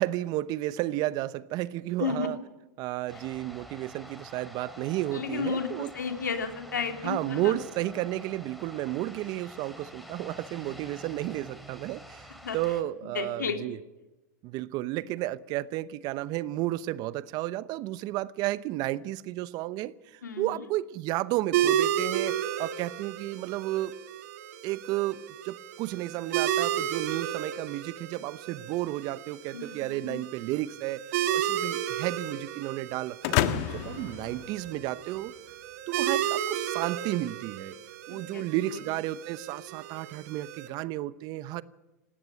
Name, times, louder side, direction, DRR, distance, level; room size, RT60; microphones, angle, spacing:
voice 1, 0.0-2.4 2.8-5.9 7.0-12.3 12.5-13.8 14.4-23.9 24.6-35.3 35.9-37.7 38.1-41.6, right 16 dB, 45° right, 0.8 m, -32 dB
sound 1, 3.1-12.8, equal, ahead, 3.1 m, -47 dB
voice 2, 5.1-7.6 12.4-12.6 13.1-13.6 20.2-20.7 29.5-30.2 38.1-38.4 38.7-38.8, left 5 dB, 90° left, 3.1 m, -33 dB
sound 2, 21.5-40.7, right 11 dB, 60° right, 2.0 m, -33 dB
sound 3, 33.2-35.2, left 12 dB, 55° left, 1.4 m, -30 dB
19.0 x 17.5 x 8.9 m
hypercardioid pair, 105°, 10 cm